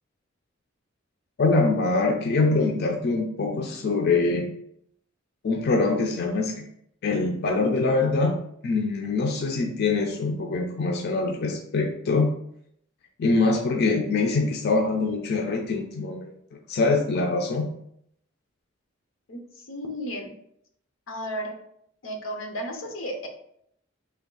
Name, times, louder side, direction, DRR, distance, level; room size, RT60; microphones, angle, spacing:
voice 1, 1.4-4.5 5.4-6.6 7.0-8.4 8.6-12.3 13.2-16.3 16.7-17.7, left 3 dB, 55° left, 2 dB, 0.4 m, -24 dB
voice 2, 19.3-20.3 21.1-21.5 22.0-23.3, equal, 90° left, 3 dB, 0.7 m, -33 dB
3.4 x 2.3 x 3.7 m, 0.71 s
head